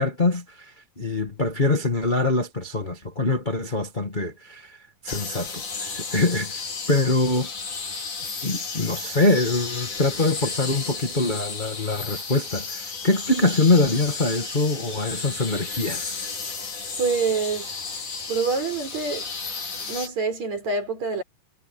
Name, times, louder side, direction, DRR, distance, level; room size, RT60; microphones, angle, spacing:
voice 1, 0.0-4.8 5.0-6.6 6.9-7.5 8.4-16.2, left 2 dB, 20° left, 1.4 m, -24 dB
sound 1, 5.1-20.1, left 4 dB, 65° left, 6.3 m, -33 dB
voice 2, 17.0-17.7 18.3-19.3 19.9-21.2, right 4 dB, 55° right, 6.5 m, -26 dB
omnidirectional pair, 3.8 m